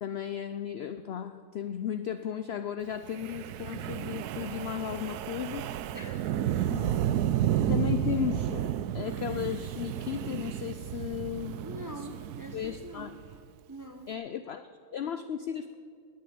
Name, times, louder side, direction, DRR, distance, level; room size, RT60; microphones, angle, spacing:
voice 1, 0.0-5.7 6.7-6.9 7.7-11.6 12.5-13.1 14.1-15.8, left 9 dB, 65° left, 11 dB, 0.6 m, -35 dB
Wind, 3.1-13.4, right 11 dB, 85° right, 1.1 m, -32 dB
voice 2, 5.9-7.0 7.4-7.7 11.6-13.4 13.7-14.1, equal, 15° right, 5 dB, 0.7 m, -45 dB
19.5 x 6.6 x 9.4 m, 2.1 s
omnidirectional pair, 1.6 m